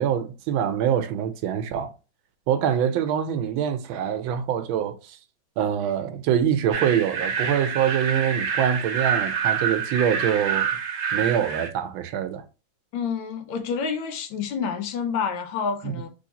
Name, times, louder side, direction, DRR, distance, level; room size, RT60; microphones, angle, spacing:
voice 1, 0.0-1.9 2.5-5.2 5.6-10.7 11.1-12.4 15.8-15.9, right 9 dB, 85° right, 1.4 m, -24 dB
sound 1, 6.7-11.7, right 7 dB, 70° right, 1.1 m, -27 dB
voice 2, 12.9-16.1, left 6 dB, 85° left, 1.4 m, -28 dB
3.4 x 3.1 x 2.8 m
omnidirectional pair, 2.1 m